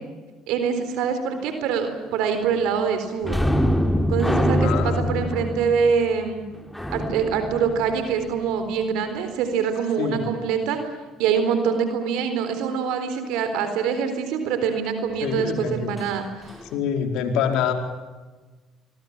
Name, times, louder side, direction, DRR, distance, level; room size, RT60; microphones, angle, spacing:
voice 1, 0.5-3.4 4.1-6.4 6.9-10.8 11.2-16.5, right 6 dB, 80° right, 8 dB, 3.9 m, -24 dB
sound 1, 3.2-8.6 16.0-16.1 16.5-16.7, equal, 5° left, 3.2 m, -24 dB
voice 2, 4.6-5.4 10.0-10.2 15.2-15.9 16.7-17.7, left 7 dB, 80° left, 5 dB, 4.5 m, -26 dB
24.5 x 23.0 x 7.3 m, 1.3 s
supercardioid pair, 80°, 0 cm